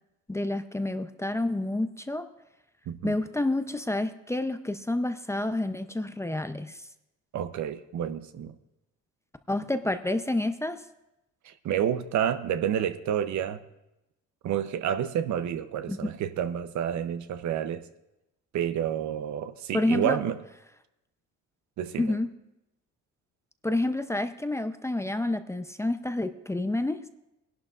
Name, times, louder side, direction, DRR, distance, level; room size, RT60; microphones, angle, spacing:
voice 1, 0.3-2.3 3.0-6.8 9.5-10.8 15.9-16.0 19.7-20.2 22.0-22.3 23.6-27.0, left 2 dB, 10° left, 9 dB, 0.5 m, -29 dB
voice 2, 2.9-3.2 7.3-8.6 11.4-13.6 14.4-17.9 18.5-20.4 21.8-22.1, right 9 dB, 70° right, 11 dB, 0.8 m, -29 dB
21.0 x 11.5 x 2.4 m, 0.91 s
cardioid pair, 100°, 31 cm